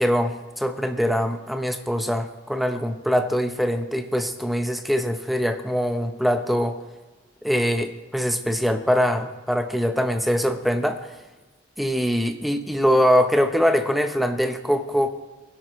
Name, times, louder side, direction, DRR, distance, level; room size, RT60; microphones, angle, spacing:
voice 1, 0.0-6.8 7.4-11.1 11.8-15.1, equal, ahead, 7 dB, 0.8 m, -23 dB
20.0 x 11.0 x 3.1 m, 1.3 s
head